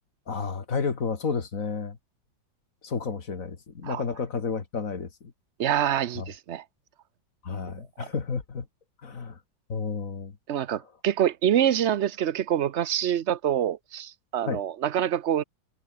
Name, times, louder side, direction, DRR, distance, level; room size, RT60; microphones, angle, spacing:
voice 1, 0.3-2.0 2.8-5.3 6.2-6.3 7.4-8.7 9.0-9.4 9.7-10.3 14.5-14.6, left 5 dB, 45° left, 2.2 m, -31 dB
voice 2, 5.6-6.6 8.0-8.1 10.5-15.4, right 10 dB, 65° right, 0.6 m, -26 dB
omnidirectional pair, 2.1 m